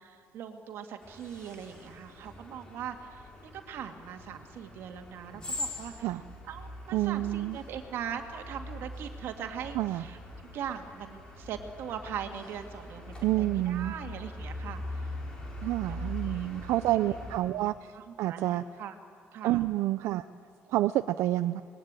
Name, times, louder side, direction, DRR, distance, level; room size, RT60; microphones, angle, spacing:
voice 1, 0.0-6.1 6.5-15.1 15.7-17.1 17.9-19.0 19.3-19.6, right 8 dB, 60° right, 5 dB, 2.3 m, -41 dB
sound 1, 1.0-17.4, left 1 dB, 20° left, 4.7 m, -42 dB
voice 2, 6.9-7.6 9.7-10.0 13.2-13.9 15.6-18.6 19.4-20.3 20.7-21.6, right 15 dB, 80° right, 11 dB, 0.6 m, -28 dB
26.0 x 21.0 x 9.0 m, 2.3 s
cardioid pair, 175°, 5 cm